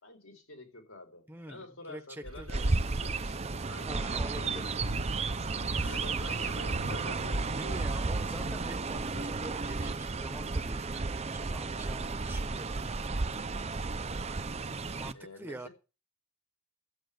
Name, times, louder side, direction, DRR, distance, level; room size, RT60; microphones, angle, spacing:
voice 1, 0.0-5.3 5.8-7.8 8.9-9.3 15.1-15.7, left 2 dB, 70° left, 4.4 m, -48 dB
voice 2, 1.3-2.9 3.8-4.7 5.8-6.1 7.5-13.1 15.0-15.7, right 1 dB, 10° right, 1.0 m, -45 dB
sound 1, 2.2-10.4, right 1 dB, 80° right, 1.7 m, -40 dB
Chirp tweet, 2.5-15.1, right 3 dB, 30° right, 0.6 m, -33 dB
12.5 x 8.9 x 6.7 m
head